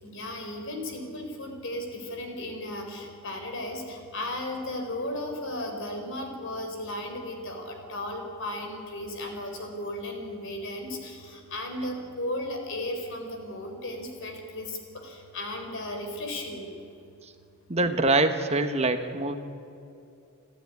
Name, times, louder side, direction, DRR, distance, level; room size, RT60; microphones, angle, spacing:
voice 1, 0.0-16.8, left 1 dB, 60° left, 4 dB, 4.1 m, -35 dB
voice 2, 17.7-19.3, right 2 dB, 30° right, 7 dB, 1.1 m, -24 dB
28.0 x 13.0 x 9.6 m, 2.7 s
head